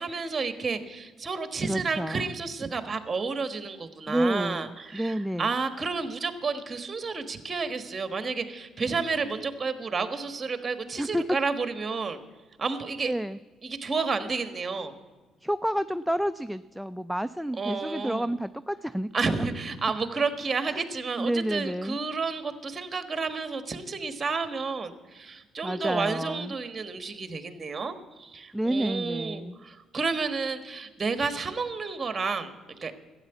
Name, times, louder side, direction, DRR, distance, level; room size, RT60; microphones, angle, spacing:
voice 1, 0.0-12.2 12.6-13.1 13.6-14.9 17.6-18.3 19.1-32.9, right 4 dB, 30° right, 10 dB, 1.4 m, -31 dB
voice 2, 1.7-2.3 4.1-5.5 11.0-11.2 13.0-13.4 15.4-19.1 19.4-19.5 20.7-20.8 21.2-22.0 25.6-26.6 28.5-29.6, right 1 dB, ahead, 12 dB, 0.3 m, -29 dB
13.0 x 8.7 x 8.0 m, 1.3 s
supercardioid pair, 80°, 0 cm